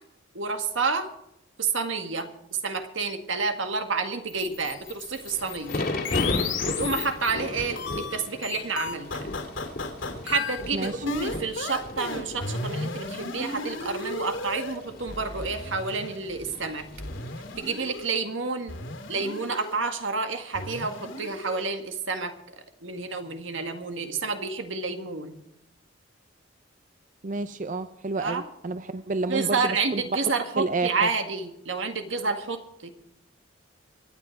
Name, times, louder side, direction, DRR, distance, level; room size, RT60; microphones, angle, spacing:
voice 1, 0.3-1.1 1.6-2.3 2.6-5.9 6.6-9.3 10.2-16.9 17.6-18.8 19.1-22.3 22.8-25.4 28.2-28.4 29.3-32.9, right 4 dB, 80° right, 6 dB, 1.8 m, -29 dB
sound 1, 4.3-7.4 7.8-14.7 15.1-16.2 17.0-18.1 18.7-19.8 20.5-21.6, left 3 dB, 85° left, 3.3 m, -34 dB
Thunder / Rain, 5.0-18.0, left 2 dB, 55° left, 2.1 m, -36 dB
voice 2, 10.7-11.0 27.2-30.0 30.6-31.1, right 3 dB, 40° right, 11 dB, 0.5 m, -30 dB
25.0 x 9.5 x 4.6 m, 0.81 s
head